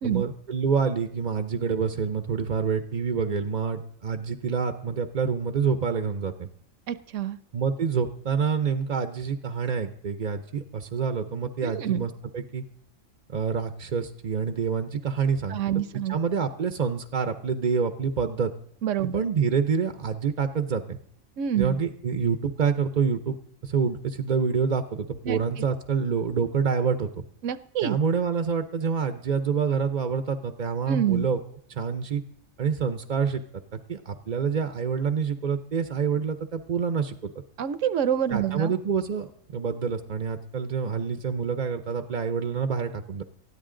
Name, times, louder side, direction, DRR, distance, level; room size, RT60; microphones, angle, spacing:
voice 1, 0.0-6.5 7.5-12.6 13.3-15.6 16.1-18.5 19.1-21.0 21.6-27.2 27.8-31.4 31.7-32.2 32.6-33.4 33.7-37.3 38.3-43.2, right 6 dB, 45° right, 10 dB, 0.6 m, -27 dB
voice 2, 6.9-7.4 11.6-12.0 15.5-16.2 18.8-19.1 21.4-21.8 25.3-25.4 27.4-28.0 30.9-31.2 37.6-38.7, right 10 dB, 70° right, 16 dB, 1.0 m, -27 dB
19.5 x 13.5 x 3.8 m, 0.67 s
omnidirectional pair, 1.4 m